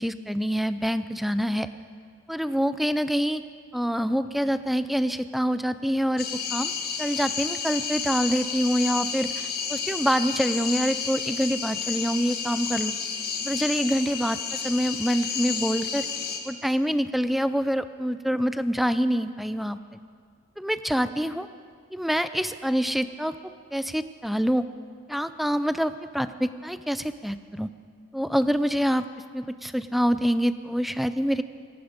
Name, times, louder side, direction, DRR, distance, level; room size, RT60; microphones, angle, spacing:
voice 1, 0.0-1.7 2.3-3.4 3.7-6.7 7.0-9.3 9.7-12.9 13.4-16.0 16.4-19.8 20.6-21.5 21.9-24.7 25.1-27.7 28.1-29.1 29.3-31.4, equal, ahead, 12 dB, 0.4 m, -26 dB
sound 1, 6.2-16.4, left 6 dB, 50° left, 1.7 m, -31 dB
18.5 x 15.5 x 5.1 m, 2.1 s
head